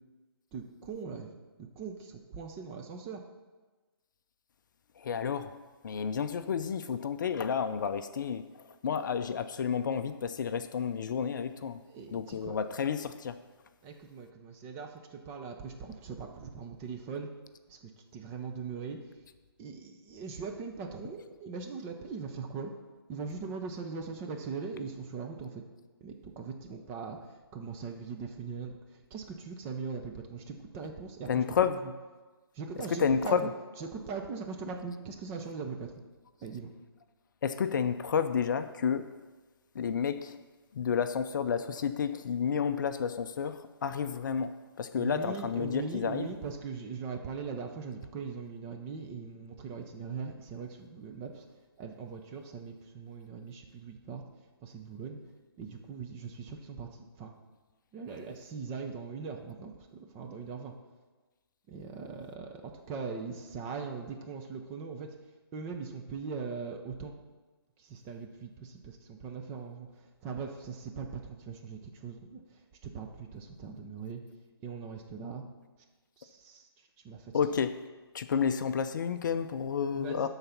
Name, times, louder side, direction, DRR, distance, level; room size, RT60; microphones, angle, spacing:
voice 1, 0.5-3.2 11.9-12.6 13.8-17.3 17.7-19.2 19.6-22.7 23.1-25.6 26.0-31.4 31.8-31.9 32.5-33.4 33.8-35.9 36.4-36.7 45.0-54.2 54.6-55.2 55.6-57.3 57.9-60.7 61.7-65.1 65.5-67.1 67.8-74.2 74.6-75.4 76.2-77.3 79.9-80.3, right 5 dB, 20° right, 3 dB, 0.7 m, -41 dB
voice 2, 5.0-5.5 5.8-11.8 12.1-13.4 31.3-31.8 33.0-33.5 37.4-39.1 39.7-40.4 40.7-46.3 77.3-77.8 78.1-80.3, left 7 dB, 50° left, 10 dB, 0.5 m, -31 dB
12.0 x 4.0 x 5.8 m, 1.3 s
figure-of-eight pair, 145°, 13 cm